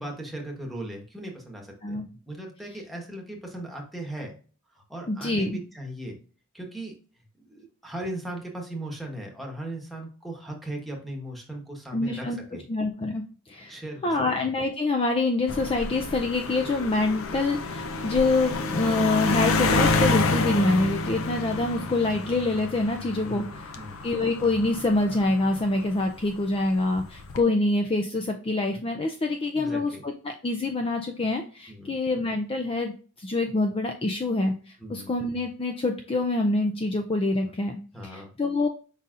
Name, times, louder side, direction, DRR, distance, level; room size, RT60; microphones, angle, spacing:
voice 1, 0.0-4.3 4.9-6.2 6.5-6.9 7.5-12.6 13.7-14.0 14.3-14.4 23.2-24.0 29.5-30.0 31.7-31.9 34.8-35.1 37.9-38.3, right 1 dB, ahead, 0 dB, 1.1 m, -38 dB
voice 2, 5.1-5.6 11.9-12.4 12.7-13.8 14.0-23.7 24.0-37.8 38.0-38.7, left 2 dB, 25° left, 4 dB, 0.4 m, -26 dB
sound 1, 15.5-26.2 27.0-27.4, left 3 dB, 75° left, 0.6 m, -28 dB
5.3 x 4.0 x 2.4 m, 0.39 s
head